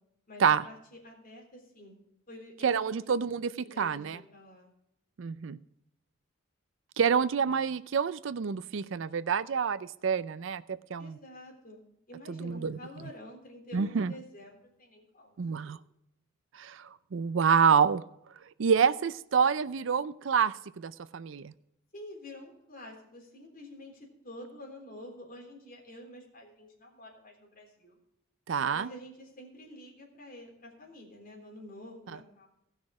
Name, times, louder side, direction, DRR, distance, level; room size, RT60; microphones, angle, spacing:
voice 1, 0.3-2.0 2.3-3.2 3.6-4.7 11.0-11.8 12.1-15.5 21.9-28.0 28.7-32.5, left 1 dB, 40° left, 0 dB, 3.7 m, -49 dB
voice 2, 2.6-4.2 5.2-5.6 7.0-11.2 12.3-12.8 13.7-14.1 15.4-15.8 16.5-18.0 18.6-21.5 28.5-28.9, right 6 dB, 60° right, 16 dB, 0.4 m, -27 dB
17.0 x 6.3 x 4.8 m, 0.78 s
head